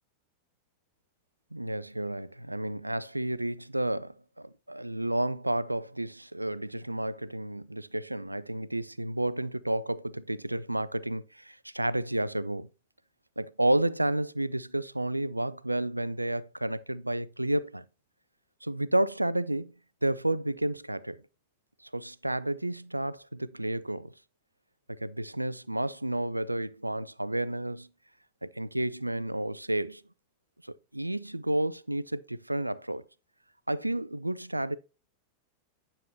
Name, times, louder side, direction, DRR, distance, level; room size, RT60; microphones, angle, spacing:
voice 1, 1.5-12.7 13.4-17.8 18.6-19.7 20.0-21.2 21.9-24.1 24.9-27.9 28.4-30.0 30.6-33.1 33.7-34.8, right 1 dB, 85° right, 0.3 m, -31 dB
9.6 x 6.6 x 2.8 m
figure-of-eight pair, 90°, 0 cm